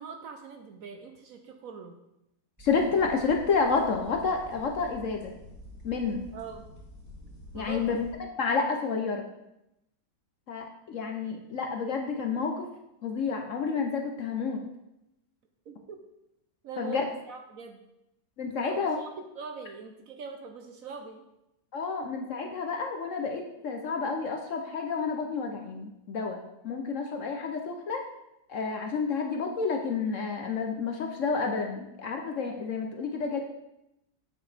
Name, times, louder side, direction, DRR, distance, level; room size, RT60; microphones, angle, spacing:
voice 1, 0.0-2.0 6.3-6.7 7.5-8.0 15.7-16.0 16.6-17.8 18.6-21.2, right 5 dB, 65° right, 5 dB, 1.0 m, -42 dB
voice 2, 2.6-5.3 5.8-6.2 7.5-8.0 8.4-9.3 10.5-12.7 13.0-14.6 16.8-17.0 18.4-19.0 21.7-28.0 28.5-33.4, left 5 dB, 60° left, 3 dB, 0.9 m, -30 dB
sound 1, 2.6-8.1, left 1 dB, 10° right, 2.5 m, -48 dB
8.7 x 6.4 x 3.4 m, 0.86 s
omnidirectional pair, 1.8 m